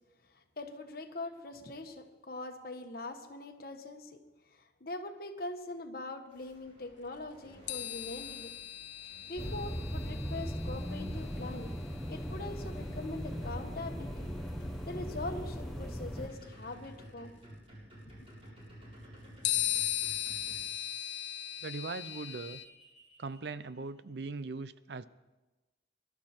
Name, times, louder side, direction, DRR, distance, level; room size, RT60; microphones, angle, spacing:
voice 1, 0.3-4.2 4.5-8.5 9.3-11.7 12.1-14.3 14.9-17.3 18.0-18.1, left 2 dB, 55° left, 6 dB, 1.4 m, -42 dB
sound 1, 6.3-20.7 21.4-23.8, equal, 30° right, 7.0 m, -55 dB
sound 2, 7.7-13.3 14.6-14.7 19.4-22.7, left 12 dB, 85° left, 0.7 m, -38 dB
sound 3, 9.4-16.3, equal, ahead, 0.9 m, -38 dB
voice 2, 21.6-22.6 23.2-25.1, right 3 dB, 65° right, 15 dB, 0.5 m, -40 dB
23.0 x 12.0 x 4.4 m, 1.1 s
head